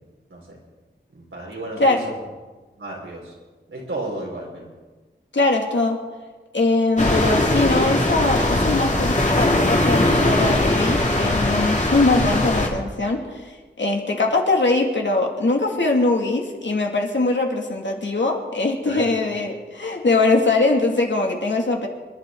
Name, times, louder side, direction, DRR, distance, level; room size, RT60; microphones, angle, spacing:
voice 1, 1.1-2.1 2.8-3.3 3.7-4.7 18.9-19.1, right 1 dB, 85° right, -3 dB, 5.0 m, -32 dB
voice 2, 5.3-6.0 6.5-21.9, left 2 dB, 70° left, 1 dB, 2.5 m, -21 dB
sound 1, 7.0-12.7, left 1 dB, 35° left, 2.6 m, -20 dB
26.5 x 11.5 x 4.0 m, 1.3 s
wide cardioid pair, 80°, 20 cm